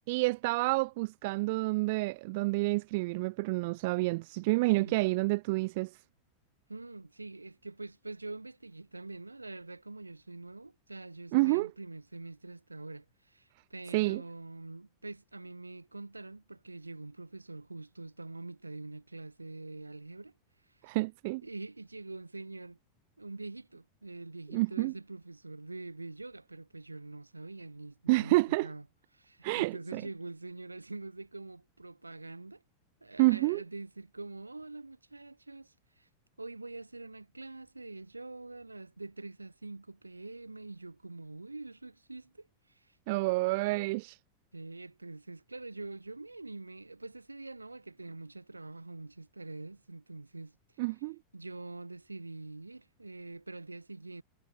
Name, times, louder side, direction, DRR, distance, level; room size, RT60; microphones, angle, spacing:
voice 1, 0.1-6.0 11.3-11.7 13.9-14.2 20.8-21.4 24.5-24.9 28.1-28.7 29.4-30.0 33.2-33.6 43.1-44.2 50.8-51.2, right 23 dB, 50° right, 0.6 m, -29 dB
voice 2, 6.7-20.3 20.7-20.8 21.4-22.8 23.2-28.8 29.1-32.6 33.0-36.1 36.4-43.0 44.5-50.6 51.3-54.2, right 2 dB, 80° right, 4.1 m, -45 dB
figure-of-eight pair, 90°, 0 cm